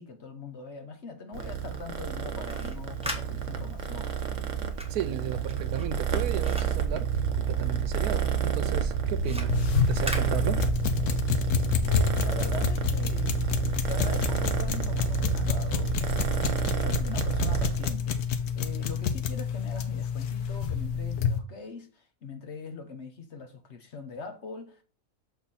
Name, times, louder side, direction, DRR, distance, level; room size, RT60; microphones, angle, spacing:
voice 1, 0.0-4.1 11.9-13.4 13.9-24.8, left 4 dB, 55° left, 1.1 m, -42 dB
Purr, 1.3-17.9, right 7 dB, 60° right, 1.1 m, -29 dB
sound 1, 2.4-7.8 8.1-11.1, equal, 5° right, 1.2 m, -41 dB
voice 2, 4.9-9.5 9.9-10.7, right 9 dB, 80° right, 1.2 m, -34 dB
sound 2, 9.5-21.4, left 7 dB, 90° left, 1.3 m, -29 dB
6.8 x 4.0 x 4.1 m
omnidirectional pair, 1.6 m